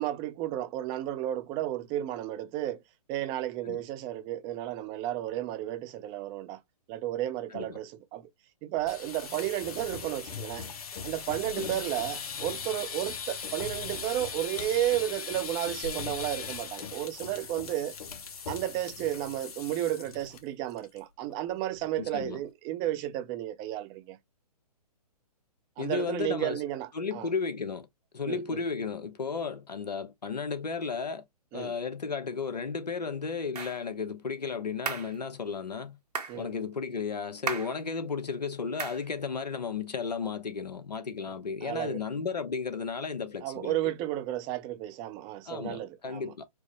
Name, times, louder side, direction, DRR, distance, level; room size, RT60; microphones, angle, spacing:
voice 1, 0.0-2.8 3.1-6.6 6.9-8.3 8.6-10.7 11.0-18.0 18.5-24.2 25.8-27.3 28.2-28.6 31.5-31.7 36.3-36.5 41.6-42.0 43.4-46.3, right 13 dB, 20° right, 0.5 m, -33 dB
sound 1, 8.8-20.4 20.7-21.0 21.3-21.4 21.8-22.2, left 6 dB, 65° left, 1.3 m, -39 dB
voice 2, 22.0-22.4 25.8-26.6 26.9-27.9 28.1-31.2 31.5-36.0 36.3-43.8 45.5-46.4, left 5 dB, 85° left, 0.9 m, -34 dB
sound 2, 33.5-33.8 34.9-35.1 36.1-36.4 37.5-37.8 38.8-39.0, right 5 dB, 75° right, 1.4 m, -34 dB
4.6 x 2.0 x 3.0 m
hypercardioid pair, 130°, 20 cm